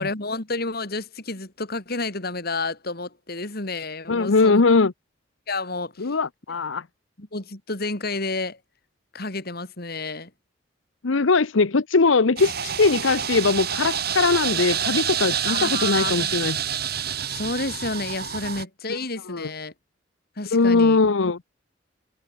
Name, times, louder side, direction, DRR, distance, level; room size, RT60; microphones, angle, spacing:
voice 1, 0.0-4.6 5.5-6.1 7.2-8.6 9.1-10.3 15.5-16.3 17.3-19.7 20.4-21.0, left 3 dB, 55° left, 3.2 m, -30 dB
voice 2, 4.1-4.9 6.0-6.8 11.0-16.6 18.9-19.0 19.3-19.5 20.5-21.4, left 4 dB, 80° left, 0.8 m, -20 dB
sound 1, 12.4-18.6, right 8 dB, 55° right, 7.0 m, -27 dB
head